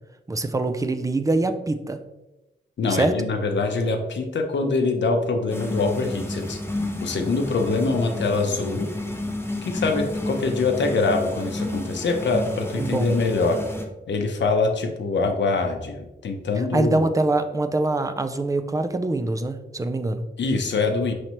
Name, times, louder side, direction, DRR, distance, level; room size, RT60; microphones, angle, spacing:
voice 1, 0.3-2.0 2.9-3.2 12.8-13.1 16.7-20.2, right 2 dB, 20° right, 9 dB, 0.4 m, -24 dB
voice 2, 2.8-6.6 7.0-8.9 9.6-13.6 14.1-17.0 20.4-21.1, left 3 dB, 75° left, 3 dB, 0.6 m, -24 dB
sound 1, 5.5-13.8, left 1 dB, 15° left, 0.7 m, -31 dB
5.5 x 3.2 x 2.9 m, 1.0 s
wide cardioid pair, 85°, 19 cm